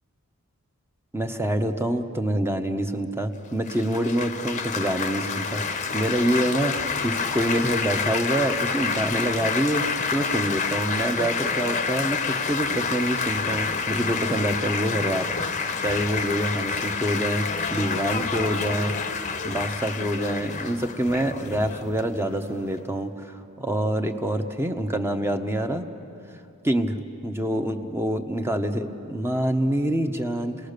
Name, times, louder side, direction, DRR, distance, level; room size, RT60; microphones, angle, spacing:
voice 1, 1.1-19.0 19.4-25.9 26.6-27.0 27.2-30.7, right 1 dB, 10° right, 6 dB, 1.0 m, -26 dB
Laughter / Applause / Chatter, 3.7-22.8, left 5 dB, 35° left, 0.8 m, -28 dB
29.0 x 19.5 x 6.7 m, 2.7 s
head